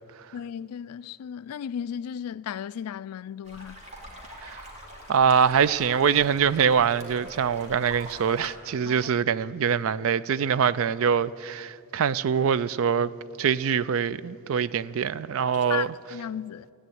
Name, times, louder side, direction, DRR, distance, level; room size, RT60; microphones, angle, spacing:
voice 1, 0.3-3.8 8.9-9.1 15.7-16.7, left 8 dB, 85° left, 0.3 m, -35 dB
sound 1, 3.4-8.5, equal, 30° right, 2.7 m, -44 dB
voice 2, 5.1-13.1 13.4-15.9, right 7 dB, 65° right, 0.4 m, -24 dB
14.5 x 9.9 x 9.3 m
head